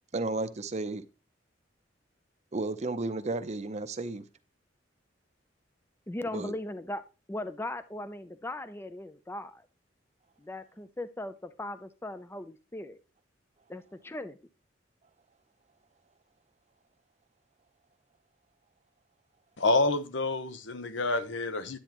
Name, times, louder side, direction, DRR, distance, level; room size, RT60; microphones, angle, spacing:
voice 1, 0.1-1.0 2.5-4.2 6.3-6.5, right 2 dB, 35° right, 0.7 m, -33 dB
voice 2, 6.1-7.0 7.3-9.7 10.4-13.0 13.7-14.4, left 1 dB, 15° left, 0.5 m, -38 dB
voice 3, 19.6-21.8, left 2 dB, 75° left, 1.0 m, -28 dB
10.5 x 8.7 x 3.0 m
head